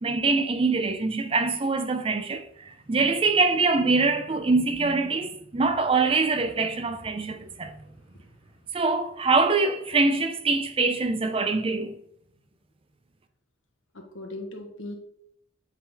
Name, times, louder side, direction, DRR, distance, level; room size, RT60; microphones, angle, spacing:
voice 1, 0.0-7.7 8.7-12.0, right 3 dB, 30° right, 0.5 m, -24 dB
voice 2, 7.4-8.4 13.9-15.0, left 2 dB, 80° left, 1.2 m, -41 dB
7.4 x 3.8 x 3.5 m
head